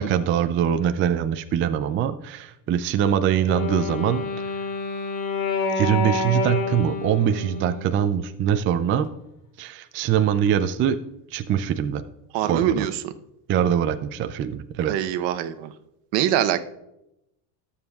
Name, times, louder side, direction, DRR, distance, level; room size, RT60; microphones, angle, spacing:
voice 1, 0.0-4.5 5.8-9.1 9.6-11.0 11.3-12.0 12.4-12.9 13.5-14.9, right 9 dB, 30° right, 10 dB, 0.3 m, -23 dB
Wind instrument woodwind instrument, 3.4-8.5, left 4 dB, 65° left, 2.5 m, -28 dB
voice 2, 12.3-13.1 14.8-15.7 16.1-16.6, right 10 dB, 60° right, 10 dB, 0.8 m, -24 dB
20.5 x 7.2 x 2.4 m, 0.88 s
supercardioid pair, 115°, 49 cm